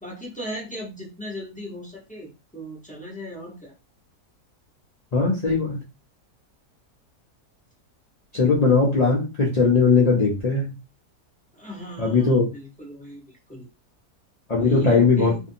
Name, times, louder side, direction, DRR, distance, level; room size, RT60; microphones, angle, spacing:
voice 1, 0.0-3.7 11.5-13.7 14.5-15.4, equal, 5° left, -4 dB, 0.7 m, -37 dB
voice 2, 5.1-5.8 8.3-10.7 12.0-12.4 14.5-15.3, left 4 dB, 80° left, -3 dB, 0.3 m, -19 dB
2.7 x 2.6 x 2.6 m, 0.27 s
omnidirectional pair, 1.7 m